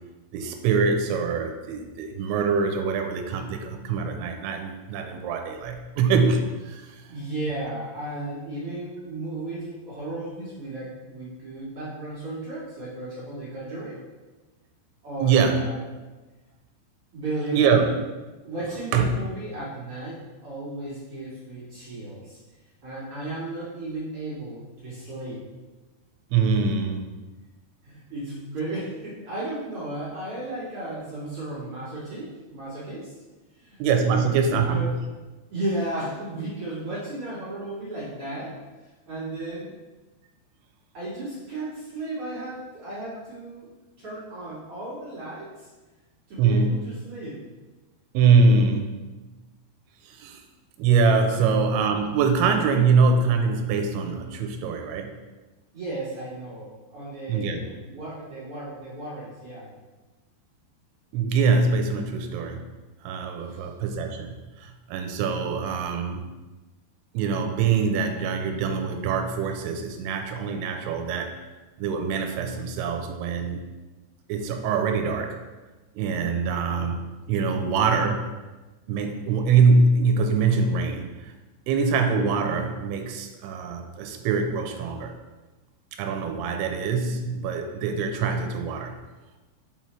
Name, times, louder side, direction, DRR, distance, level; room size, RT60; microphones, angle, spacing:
voice 1, 0.3-7.0 15.2-15.6 17.5-17.9 18.9-19.1 26.3-27.0 33.8-34.9 46.4-46.8 48.1-49.0 50.0-50.4 50.8-55.1 57.3-57.6 61.1-62.6 63.0-66.2 67.1-71.4 71.8-73.7 74.3-75.4 75.9-78.3 78.9-81.3 81.7-85.1 86.0-89.0, right 5 dB, 80° right, 5 dB, 2.5 m, -23 dB
voice 2, 7.1-14.0 15.0-15.8 17.1-17.9 18.4-22.4 22.8-25.4 27.8-33.1 33.6-34.9 35.5-38.6 39.1-39.7 40.9-43.7 44.0-45.7 46.3-47.4 51.2-51.5 55.7-59.7 63.5-63.6, right 2 dB, 50° right, -10 dB, 1.9 m, -34 dB
7.1 x 5.6 x 3.1 m, 1.2 s
omnidirectional pair, 4.7 m